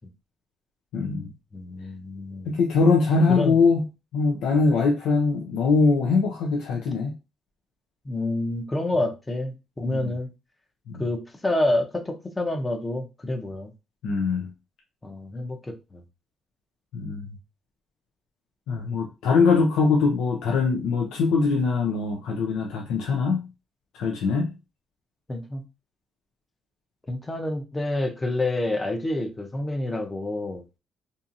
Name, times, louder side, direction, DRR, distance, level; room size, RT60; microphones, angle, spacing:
voice 1, 0.9-1.3 2.5-3.8 4.1-7.1 9.9-10.1 10.9-11.0 14.0-14.5 16.9-17.3 18.7-23.5 23.9-24.5, left 4 dB, 90° left, 0.4 m, -22 dB
voice 2, 1.5-2.6 3.3-3.6 8.0-10.3 11.0-13.7 15.0-16.0 25.3-25.6 27.1-30.6, left 1 dB, 20° left, 0.6 m, -28 dB
2.7 x 2.4 x 2.5 m
cardioid pair, 90°, 0 cm